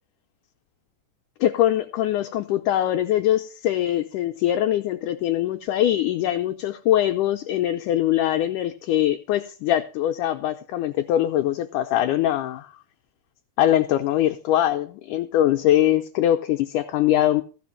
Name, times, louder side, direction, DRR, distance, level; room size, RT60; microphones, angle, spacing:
voice 1, 1.4-12.7 13.6-17.4, left 12 dB, 75° left, 1.9 m, -22 dB
15.5 x 5.2 x 7.3 m
omnidirectional pair, 4.3 m